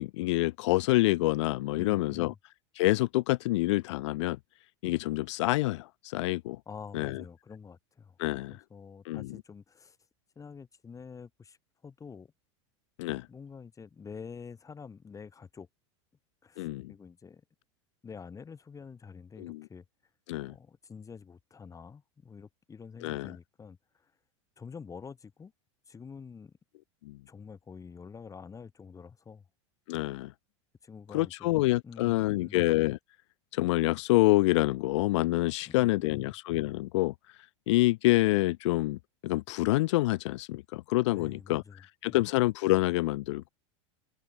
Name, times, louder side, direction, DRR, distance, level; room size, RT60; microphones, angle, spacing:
voice 1, 0.0-2.3 2.7-4.4 4.8-6.6 6.9-7.2 8.2-8.6 9.0-9.4 13.0-13.3 16.6-16.9 19.4-19.6 20.3-20.5 23.0-23.3 27.0-27.2 29.9-30.3 31.1-33.0 33.5-37.1 37.7-43.5, left 19 dB, 70° left, 1.5 m, -27 dB
voice 2, 1.7-2.4 6.7-8.2 8.7-10.0 10.4-11.6 11.8-12.3 13.3-15.7 16.4-17.4 18.0-19.8 20.4-24.1 24.6-25.5 25.9-26.5 27.3-29.4 30.8-31.5 31.8-32.6 35.7-36.3 41.1-41.8 42.1-42.2, left 5 dB, 20° left, 5.8 m, -47 dB
open air
hypercardioid pair, 105°, 16 cm